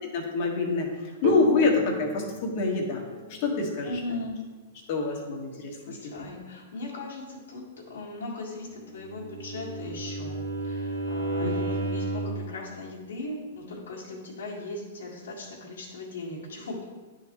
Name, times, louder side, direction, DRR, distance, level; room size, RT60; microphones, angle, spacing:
voice 1, 0.1-0.9 1.2-3.0 3.4-3.9 4.9-6.3 11.4-11.5, left 3 dB, 50° left, 0 dB, 1.4 m, -26 dB
sound 1, 1.2-4.9, right 1 dB, 55° right, 0.8 m, -37 dB
voice 2, 3.8-4.4 5.0-5.2 5.5-16.9, left 2 dB, 75° left, -4 dB, 1.8 m, -38 dB
Bowed string instrument, 8.9-12.5, right 2 dB, 90° right, 1.1 m, -32 dB
9.8 x 4.0 x 3.0 m, 1.3 s
hypercardioid pair, 125°, 0 cm